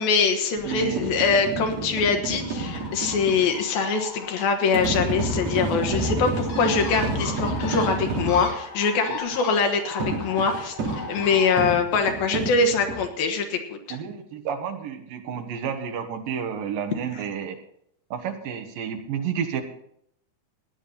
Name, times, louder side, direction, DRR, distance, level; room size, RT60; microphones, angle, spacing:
voice 1, 0.0-10.8 11.1-14.0, left 5 dB, 75° left, 5 dB, 3.1 m, -23 dB
sound 1, 0.6-3.5 4.7-8.5 10.0-13.0, right 2 dB, 45° right, 3.9 m, -29 dB
voice 2, 0.7-1.1 6.0-6.2 9.1-9.2 13.9-17.6 18.1-19.6, right 7 dB, 70° right, 6 dB, 2.8 m, -31 dB
Bird, 2.4-11.6, left 4 dB, 45° left, 2.6 m, -38 dB
16.5 x 10.0 x 4.2 m, 0.72 s
omnidirectional pair, 4.4 m